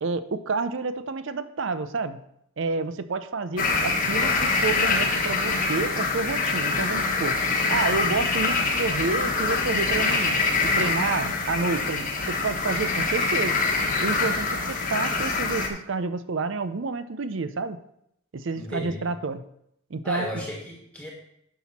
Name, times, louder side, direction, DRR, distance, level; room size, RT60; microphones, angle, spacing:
voice 1, 0.0-2.2 2.6-7.4 7.7-13.6 14.0-17.8 18.3-19.4 19.9-20.5, right 4 dB, 60° right, 11 dB, 0.6 m, -29 dB
sound 1, 3.6-15.7, left 3 dB, 40° left, 1.3 m, -25 dB
voice 2, 18.5-19.0 20.0-21.1, left 1 dB, 5° left, -2 dB, 1.5 m, -34 dB
10.5 x 5.9 x 4.2 m, 0.75 s
head